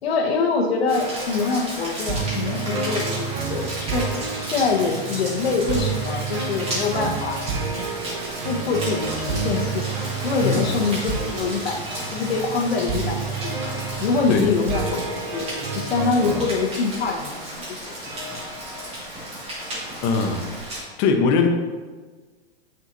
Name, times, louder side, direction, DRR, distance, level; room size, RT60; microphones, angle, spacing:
voice 1, 0.0-4.1 4.4-7.4 8.4-9.9 10.2-11.8 12.1-13.6 14.0-15.5 15.7-17.9, left 4 dB, 75° left, 1 dB, 1.3 m, -24 dB
Rain, 0.9-20.8, equal, 20° right, 2.1 m, -33 dB
sound 1, 2.1-16.5, right 5 dB, 55° right, 1.1 m, -30 dB
voice 2, 20.0-20.5 21.0-21.5, left 5 dB, 40° left, 4 dB, 0.9 m, -20 dB
8.0 x 6.1 x 2.7 m, 1.4 s
hypercardioid pair, 130°, 31 cm